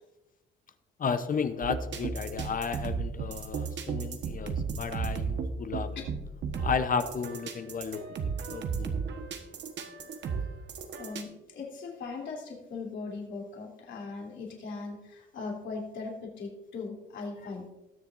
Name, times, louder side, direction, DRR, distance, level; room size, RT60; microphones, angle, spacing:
voice 1, 1.0-6.0 6.6-9.0, left 6 dB, 45° left, 10 dB, 0.8 m, -33 dB
sound 1, 1.6-11.2, right 5 dB, 65° right, 1.3 m, -34 dB
voice 2, 11.0-17.8, left 4 dB, 70° left, -1 dB, 3.2 m, -39 dB
20.5 x 7.0 x 2.6 m, 0.99 s
cardioid pair, 90°, 20 cm